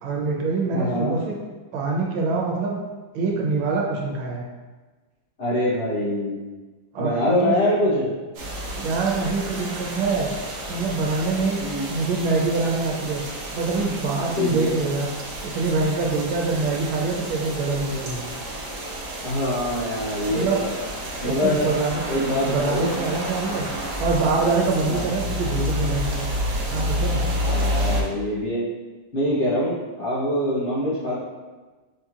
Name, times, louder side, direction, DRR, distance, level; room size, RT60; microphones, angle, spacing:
voice 1, 0.0-1.3 1.7-2.8 3.1-4.4 6.9-7.5 8.7-10.3 10.7-11.6 11.9-15.1 15.4-18.3 20.3-20.6 21.2-22.0 22.4-26.3 26.7-27.3, right 3 dB, 90° right, -1 dB, 1.6 m, -25 dB
voice 2, 0.7-1.2 5.4-6.4 7.0-8.1 11.6-11.9 14.4-14.8 19.2-20.8 21.2-21.7 22.1-22.9 24.8-25.1 27.4-28.6 29.1-31.2, left 1 dB, 55° left, -9 dB, 0.8 m, -24 dB
sound 1, 8.3-28.0, equal, 65° right, 1.2 m, -30 dB
5.4 x 2.9 x 2.4 m, 1.3 s
omnidirectional pair, 2.2 m